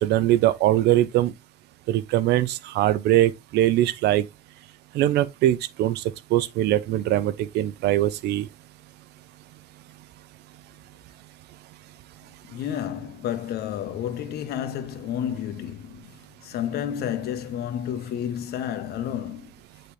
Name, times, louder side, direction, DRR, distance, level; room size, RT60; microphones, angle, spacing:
voice 1, 0.0-1.3 1.9-4.2 4.9-6.0 6.3-8.5, right 14 dB, 80° right, 0.7 m, -22 dB
voice 2, 12.5-19.5, left 10 dB, 70° left, 1.0 m, -31 dB
8.4 x 4.0 x 3.2 m
cardioid pair, 110°, 17 cm